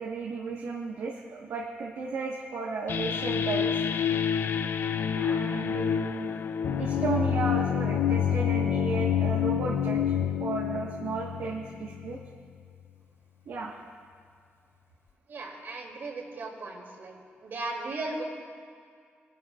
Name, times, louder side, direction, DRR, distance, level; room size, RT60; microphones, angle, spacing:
voice 1, 0.0-3.7 5.1-6.3 6.8-10.1 10.4-12.2 13.5-13.8, right 4 dB, 80° right, -3 dB, 1.4 m, -34 dB
sound 1, 2.9-12.2, left 8 dB, 65° left, 0.5 m, -28 dB
voice 2, 15.3-17.1 17.4-18.2, right 2 dB, 60° right, -1 dB, 2.8 m, -36 dB
23.5 x 12.0 x 2.5 m, 2.2 s
cardioid pair, 115°, 4 cm